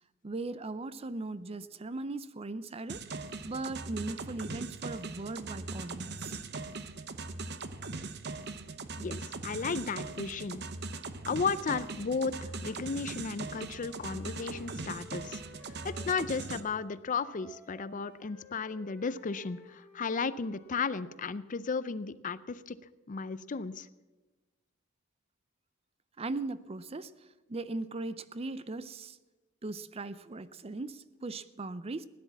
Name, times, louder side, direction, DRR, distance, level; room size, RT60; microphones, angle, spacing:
voice 1, 0.2-6.4 26.2-29.2 29.6-32.0, right 2 dB, 30° right, 15 dB, 0.5 m, -39 dB
sound 1, 2.9-16.6, right 3 dB, 55° right, 0.9 m, -40 dB
voice 2, 9.0-10.6 11.3-15.4 15.8-22.8 23.1-23.9, left 5 dB, 40° left, 16 dB, 0.5 m, -34 dB
Wind instrument woodwind instrument, 13.1-16.9 17.2-21.2, left 2 dB, 10° left, 2.7 m, -56 dB
16.5 x 10.5 x 7.2 m, 1.2 s
head